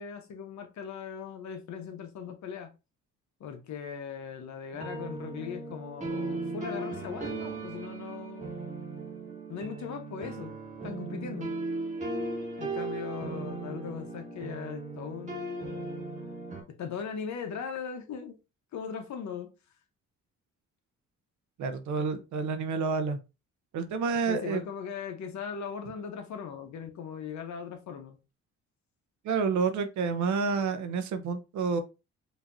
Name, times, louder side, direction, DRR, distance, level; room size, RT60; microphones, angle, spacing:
voice 1, 0.0-2.7 3.4-8.6 9.5-10.5 10.8-11.5 12.6-15.8 16.8-18.4 18.7-19.5 24.3-28.2, left 6 dB, 65° left, 1.0 m, -39 dB
sound 1, 4.7-16.6, right 2 dB, 25° right, 1.3 m, -37 dB
voice 2, 21.6-23.2 23.7-24.6 29.2-31.8, right 5 dB, 70° right, 0.8 m, -29 dB
4.9 x 2.8 x 2.7 m
cardioid pair, 90°, 30 cm